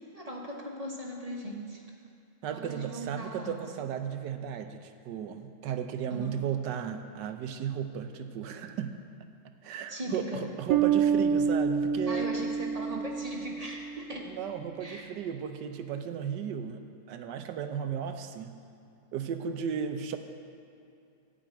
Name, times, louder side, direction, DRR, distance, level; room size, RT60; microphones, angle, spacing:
voice 1, 0.1-1.8 2.5-3.6 6.2-6.4 9.9-10.5 12.1-14.3 14.8-15.1, right 1 dB, 25° right, -1 dB, 1.2 m, -39 dB
voice 2, 2.4-8.9 9.6-12.3 14.2-18.5 19.1-20.2, right 8 dB, 85° right, 8 dB, 1.4 m, -35 dB
Bass guitar, 10.7-14.2, right 7 dB, 70° right, 0.9 m, -28 dB
13.5 x 5.1 x 8.9 m, 2.5 s
omnidirectional pair, 1.8 m